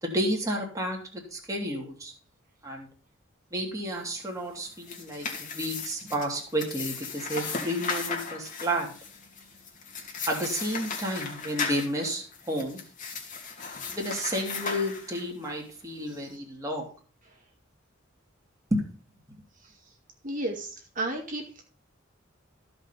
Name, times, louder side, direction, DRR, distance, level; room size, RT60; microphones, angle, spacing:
voice 1, 0.0-2.1 2.6-2.9 3.5-8.9 10.3-12.8 13.8-16.9 18.7-18.8, equal, 15° right, -1 dB, 2.6 m, -31 dB
sound 1, 4.6-15.5, left 5 dB, 40° left, 2.6 m, -36 dB
voice 2, 20.2-21.6, right 1 dB, 45° right, 0 dB, 2.1 m, -33 dB
14.5 x 5.2 x 5.7 m, 0.40 s
head